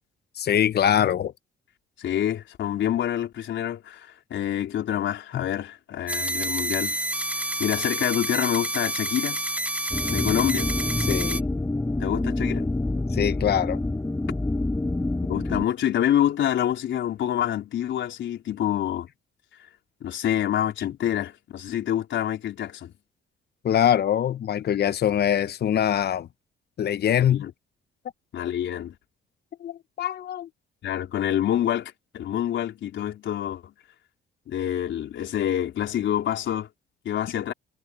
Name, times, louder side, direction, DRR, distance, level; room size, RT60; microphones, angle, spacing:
voice 1, 0.4-1.3 5.3-5.4 11.1-11.4 13.1-13.8 23.6-26.3 26.8-27.5 29.6-30.5, left 10 dB, 55° left, 0.9 m, -23 dB
voice 2, 2.0-7.0 7.6-9.4 10.1-10.7 12.0-12.7 15.3-19.1 20.0-22.9 27.3-27.5 28.3-28.9 30.8-33.7 34.5-36.7 37.0-37.5, left 11 dB, 70° left, 4.2 m, -27 dB
sound 1, 6.1-11.4, right 1 dB, 5° right, 0.8 m, -29 dB
sound 2, 9.9-15.6, left 2 dB, 15° left, 4.9 m, -27 dB
cardioid pair, 90°, 20 cm